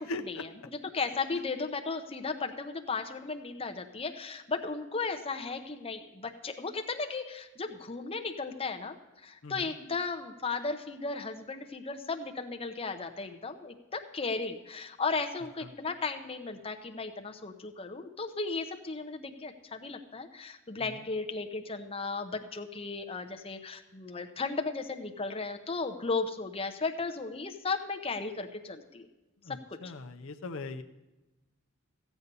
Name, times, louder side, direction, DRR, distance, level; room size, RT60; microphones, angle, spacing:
voice 1, 0.1-0.4 9.4-9.8 15.6-15.7 20.8-21.1 29.4-30.8, left 2 dB, 75° left, 6 dB, 0.7 m, -40 dB
voice 2, 0.9-9.0 9.2-29.1 29.5-29.9, left 4 dB, 30° left, 5 dB, 0.8 m, -35 dB
15.0 x 8.2 x 5.4 m, 1.0 s
head